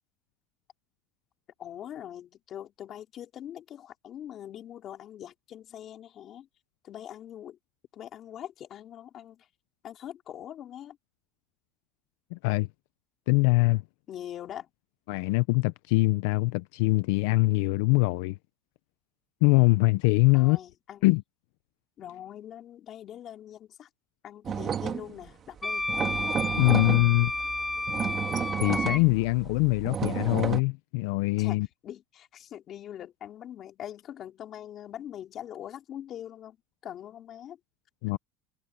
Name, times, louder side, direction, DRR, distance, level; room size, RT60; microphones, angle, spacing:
voice 1, 1.6-6.5 6.8-7.6 7.9-9.5 9.8-11.0 14.1-14.7 20.3-21.0 22.0-23.9 24.2-25.9 31.4-36.6 36.8-37.6, left 10 dB, 40° left, 4.0 m, -42 dB
voice 2, 12.3-12.7 13.3-13.8 15.1-18.4 19.4-20.6 21.0-21.2 26.6-27.3 28.6-31.7 38.0-38.2, left 23 dB, 75° left, 0.6 m, -23 dB
sound 1, 24.5-25.3 25.6-30.6, right 8 dB, 30° right, 1.9 m, -32 dB
Wind instrument woodwind instrument, 25.6-29.0, left 2 dB, 10° left, 2.3 m, -31 dB
supercardioid pair, 135°, 0 cm